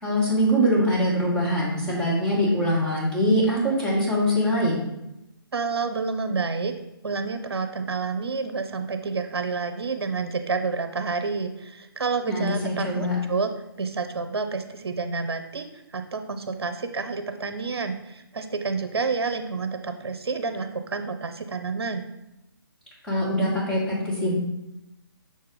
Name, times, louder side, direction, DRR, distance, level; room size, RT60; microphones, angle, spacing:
voice 1, 0.0-4.8 12.3-13.1 23.1-24.3, equal, 5° left, -7 dB, 1.6 m, -23 dB
voice 2, 5.5-6.8 7.0-13.5 13.8-22.0, right 4 dB, 80° right, 7 dB, 0.6 m, -29 dB
6.2 x 4.2 x 3.8 m, 0.90 s
figure-of-eight pair, 150°, 13 cm